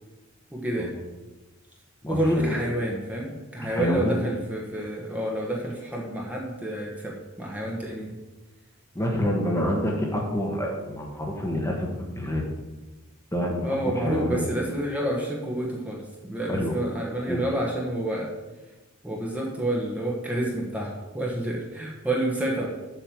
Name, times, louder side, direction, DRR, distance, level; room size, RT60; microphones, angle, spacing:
voice 1, 0.5-0.9 2.1-8.2 13.6-18.3 19.0-22.7, right 1 dB, 5° right, -3 dB, 1.3 m, -29 dB
voice 2, 2.0-2.6 3.7-4.2 8.9-12.4 13.3-14.5 16.5-16.8 17.3-17.4, equal, 15° left, -1 dB, 1.3 m, -27 dB
7.4 x 5.5 x 7.4 m, 1.1 s
head